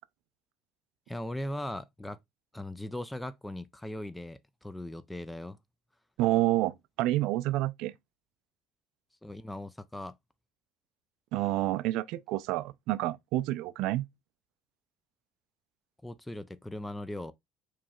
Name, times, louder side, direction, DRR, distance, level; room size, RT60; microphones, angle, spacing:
voice 1, 1.1-2.2 2.5-5.6 9.2-10.1 16.0-17.3, left 1 dB, 10° left, 0.4 m, -39 dB
voice 2, 6.2-7.9 11.3-14.0, right 16 dB, 70° right, 0.3 m, -28 dB
4.7 x 3.1 x 2.3 m
supercardioid pair, 90°, 0 cm